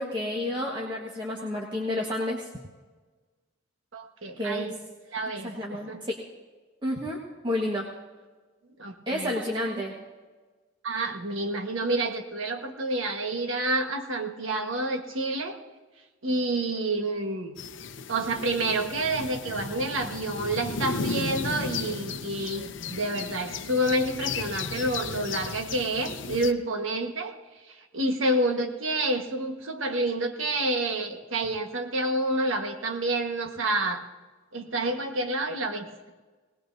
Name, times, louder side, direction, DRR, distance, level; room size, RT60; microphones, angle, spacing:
voice 1, 0.0-2.5 4.4-4.7 5.4-6.2 6.8-7.8 9.1-9.9, left 1 dB, 25° right, -2 dB, 1.5 m, -30 dB
voice 2, 3.9-4.7 5.1-6.0 8.8-9.3 10.8-15.6 16.2-17.6 18.1-27.3 27.9-34.0 34.5-36.1, right 1 dB, 80° right, 4 dB, 1.4 m, -28 dB
sound 1, 17.6-26.5, left 5 dB, 65° left, 0.7 m, -35 dB
20.0 x 19.0 x 2.7 m, 1.3 s
head